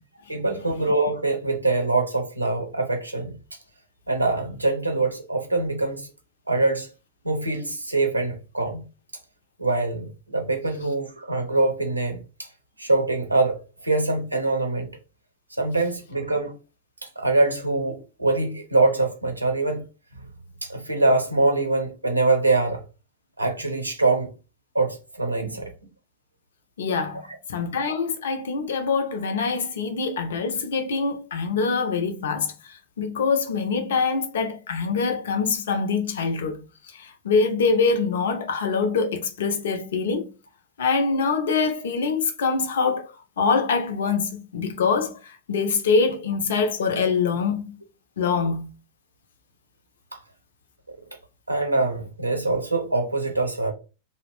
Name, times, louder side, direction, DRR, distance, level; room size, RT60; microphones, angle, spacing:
voice 1, 0.3-3.4 4.1-6.1 6.5-6.9 7.2-8.8 9.6-12.5 12.8-15.0 15.6-16.5 17.2-19.8 20.6-22.8 23.4-24.3 24.7-25.7 50.1-50.2 51.5-53.7, right 2 dB, 85° right, 0.6 m, -24 dB
voice 2, 26.8-27.2 27.5-36.6 36.9-40.3 40.8-43.1 43.4-47.7 48.2-48.6, left 4 dB, 60° left, 0.5 m, -24 dB
2.4 x 2.0 x 3.4 m
figure-of-eight pair, 90°, 0 cm